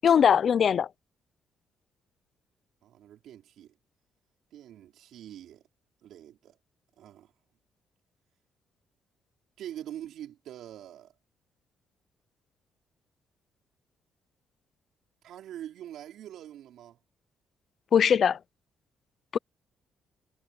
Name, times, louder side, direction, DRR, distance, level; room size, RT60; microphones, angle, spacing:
voice 1, 0.0-0.9 17.9-18.4 19.3-19.4, left 8 dB, 55° left, 0.5 m, -21 dB
voice 2, 2.8-3.7 4.5-5.6 6.0-6.6 7.0-7.3 9.6-11.1 15.2-17.0, right 11 dB, 80° right, 5.0 m, -44 dB
cardioid pair, 90°, 0 cm